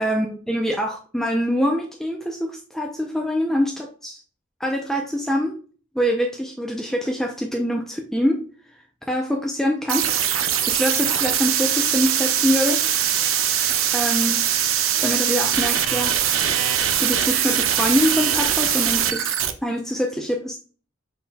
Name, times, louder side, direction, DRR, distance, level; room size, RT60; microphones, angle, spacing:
voice 1, 0.0-4.2 4.6-5.6 5.9-8.4 9.1-10.3 10.6-12.8 13.9-14.4 15.0-16.2 17.0-19.3 19.6-20.6, equal, ahead, 1 dB, 0.5 m, -24 dB
sound 1, 9.9-19.5, right 9 dB, 80° right, 0.6 m, -21 dB
5.6 x 4.2 x 2.3 m, 0.39 s
head